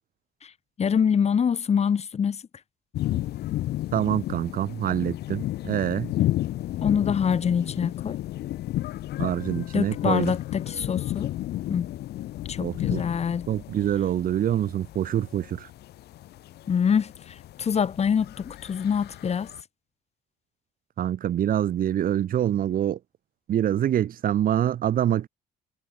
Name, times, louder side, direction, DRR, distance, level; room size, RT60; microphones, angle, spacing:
voice 1, 0.8-2.4 6.8-8.2 9.7-11.3 11.7-11.9 12.5-13.5 16.7-19.5, left 7 dB, 40° left, 3.6 m, -25 dB
sound 1, 2.9-19.6, left 14 dB, 75° left, 5.9 m, -32 dB
voice 2, 3.9-6.1 9.2-10.3 12.6-13.0 13.5-15.7 21.0-23.0 23.5-25.3, right 11 dB, 55° right, 4.1 m, -25 dB
cardioid pair, 110°, 17 cm